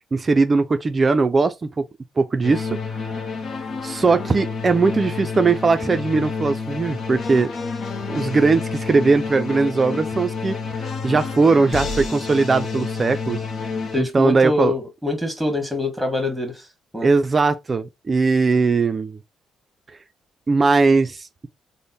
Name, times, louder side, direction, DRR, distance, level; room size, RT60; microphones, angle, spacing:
voice 1, 0.1-1.8 2.2-2.7 3.8-7.5 8.1-13.4 14.0-14.7 17.0-19.2 20.5-21.3, right 4 dB, 30° right, 0.4 m, -19 dB
sound 1, 2.4-14.0, left 4 dB, 55° left, 0.7 m, -29 dB
voice 2, 13.9-16.7 16.9-17.1, left 2 dB, ahead, 1.4 m, -25 dB
3.4 x 2.1 x 4.0 m
cardioid pair, 90°, 0 cm